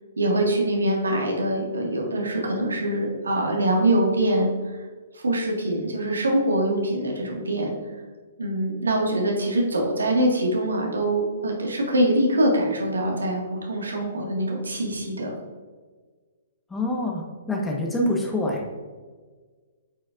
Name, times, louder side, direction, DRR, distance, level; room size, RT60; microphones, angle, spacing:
voice 1, 0.2-4.5 5.1-7.7 8.4-15.3, right 1 dB, 85° right, 0 dB, 1.8 m, -24 dB
voice 2, 16.7-18.7, left 1 dB, 10° left, 0 dB, 1.2 m, -26 dB
8.4 x 6.2 x 2.5 m, 1.5 s
hypercardioid pair, 125°, 0 cm